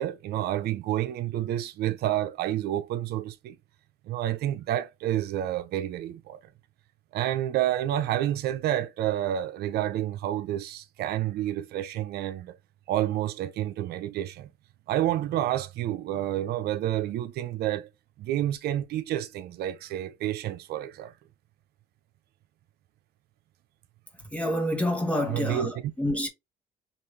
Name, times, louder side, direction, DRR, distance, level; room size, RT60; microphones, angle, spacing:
voice 1, 0.0-3.6 4.0-6.4 7.1-12.6 12.9-14.5 14.9-17.9 18.2-21.1 25.3-25.7, right 12 dB, 70° right, 0.6 m, -29 dB
voice 2, 24.3-26.3, left 1 dB, 5° left, 1.1 m, -28 dB
5.2 x 2.5 x 3.2 m
cardioid pair, 110°, 17 cm